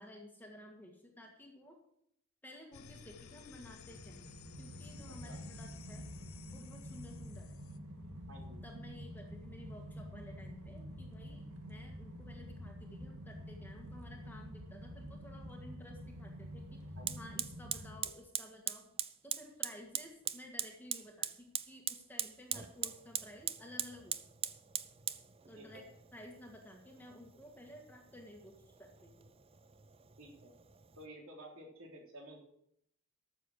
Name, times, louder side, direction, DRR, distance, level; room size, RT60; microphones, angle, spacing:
voice 1, 0.0-1.8 2.4-4.3 4.6-6.1 6.5-7.6 8.6-24.1 25.5-29.3, left 1 dB, 10° left, 1 dB, 1.7 m, -54 dB
sound 1, 2.7-7.8, left 6 dB, 70° left, 0.6 m, -55 dB
sound 2, 3.9-18.0, equal, 85° right, 1.8 m, -48 dB
voice 2, 8.3-8.6 17.0-17.1 25.6-25.8 30.2-30.5 31.0-32.4, right 1 dB, 70° right, 0 dB, 3.5 m, -52 dB
Fire, 16.1-16.2 17.1-31.1, right 10 dB, 25° right, 0.4 m, -42 dB
12.5 x 7.1 x 6.5 m, 0.74 s
head